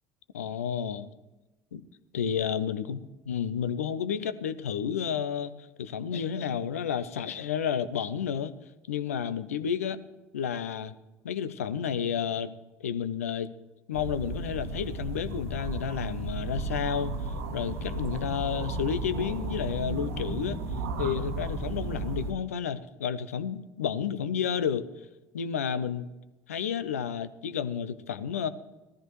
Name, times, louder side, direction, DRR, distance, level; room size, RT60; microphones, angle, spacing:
voice 1, 0.3-1.1 1.7-1.8 2.1-3.0 3.3-5.5 5.8-8.5 8.9-10.0 10.3-10.9 11.2-12.5 12.8-13.5 13.9-17.1 17.5-20.6 21.0-24.9 25.3-26.1 26.5-28.5, left 8 dB, 80° left, 13 dB, 0.6 m, -31 dB
sound 1, 13.9-22.3, right 3 dB, 75° right, 1.3 m, -34 dB
17.0 x 13.5 x 3.1 m, 1.1 s
figure-of-eight pair, 60°, 8 cm